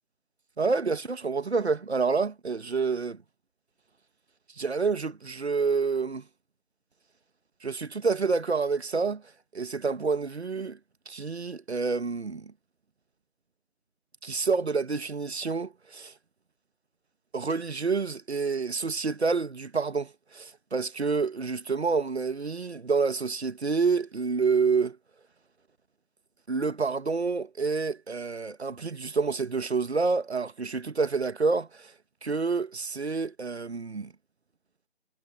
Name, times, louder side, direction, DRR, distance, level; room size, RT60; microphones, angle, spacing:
voice 1, 0.6-3.2 4.6-6.2 7.6-9.2 9.5-10.8 11.1-12.5 14.2-16.1 17.3-25.0 26.5-31.9 32.2-34.1, right 4 dB, 70° right, 1.4 m, -28 dB
figure-of-eight pair, 170°, 33 cm